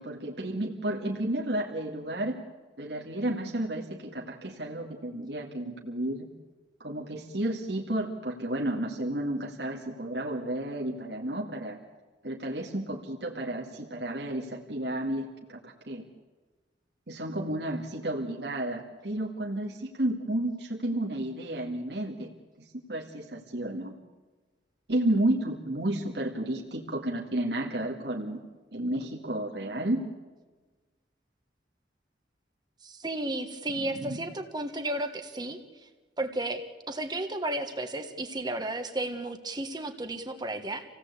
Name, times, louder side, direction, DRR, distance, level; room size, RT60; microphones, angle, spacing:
voice 1, 0.0-2.4 2.8-6.3 6.8-11.8 12.2-16.1 17.1-22.3 22.6-23.9 24.9-28.4 28.7-30.0 33.8-34.2, right 1 dB, 65° right, -1 dB, 2.1 m, -32 dB
voice 2, 32.8-35.6 36.2-40.8, right 1 dB, 25° right, 6 dB, 1.5 m, -33 dB
27.0 x 17.5 x 8.3 m, 1.3 s
head